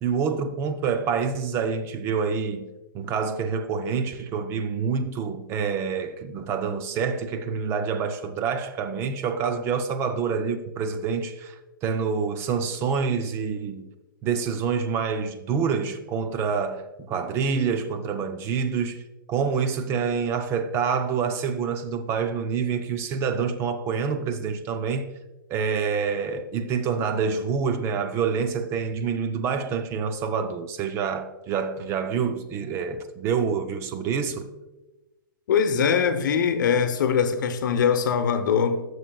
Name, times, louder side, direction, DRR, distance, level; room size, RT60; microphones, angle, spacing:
voice 1, 0.0-2.7 2.9-13.9 14.2-19.0 19.3-25.1 25.5-34.5, right 6 dB, 25° right, 0.4 m, -27 dB
voice 2, 35.5-38.9, left 7 dB, 60° left, 0.9 m, -22 dB
13.5 x 6.3 x 2.3 m
hypercardioid pair, 135°, 11 cm